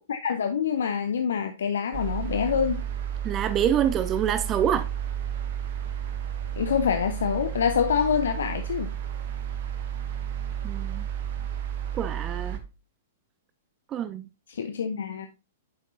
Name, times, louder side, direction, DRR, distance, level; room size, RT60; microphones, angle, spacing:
voice 1, 0.1-2.8 6.6-8.9 14.5-15.3, left 7 dB, 70° left, 0.5 m, -26 dB
sound 1, 1.9-12.6, right 9 dB, 55° right, 1.1 m, -32 dB
voice 2, 3.2-4.9 10.6-11.0 11.9-12.6 13.9-14.2, right 9 dB, 30° right, 0.4 m, -26 dB
8.6 x 5.9 x 2.7 m
figure-of-eight pair, 110°, 0 cm